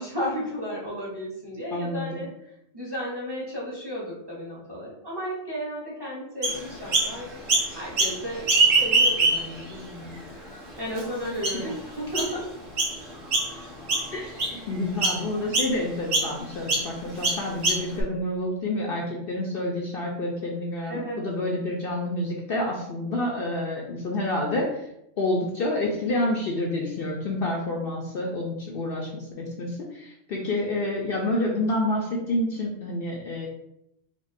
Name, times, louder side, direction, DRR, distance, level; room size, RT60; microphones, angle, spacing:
voice 1, 0.0-2.3 2.7-7.3 7.7-8.5 8.8-10.2 10.8-12.4 13.5-13.8 20.9-21.2, equal, 25° right, -6 dB, 0.8 m, -33 dB
voice 2, 1.7-2.2 11.5-11.7 14.1-24.9 25.2-33.5, left 1 dB, 60° left, -1 dB, 0.7 m, -28 dB
Chirp tweet, 6.4-7.1 7.5-8.2 8.4-9.6 10.2-10.3 11.0-11.1 11.4-11.7 12.1-12.3 12.8-13.0 13.3-13.6 13.9-14.6 15.0-15.2 15.5-15.7 16.1-16.3 16.7-16.9 17.2-18.0, right 3 dB, 85° right, 1.4 m, -22 dB
4.5 x 2.4 x 2.5 m, 0.80 s
omnidirectional pair, 1.3 m